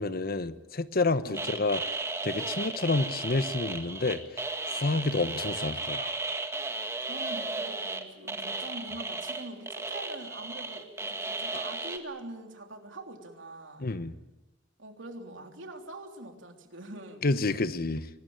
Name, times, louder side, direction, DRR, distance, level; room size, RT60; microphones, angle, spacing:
voice 1, 0.0-1.8 2.2-6.2 13.8-14.1 17.2-18.1, left 3 dB, 55° left, 1.0 m, -29 dB
sound 1, 1.3-12.0, right 3 dB, 15° right, 1.9 m, -35 dB
voice 2, 7.0-13.9 14.8-17.3, right 2 dB, 80° right, 3.3 m, -44 dB
24.0 x 20.0 x 8.9 m
head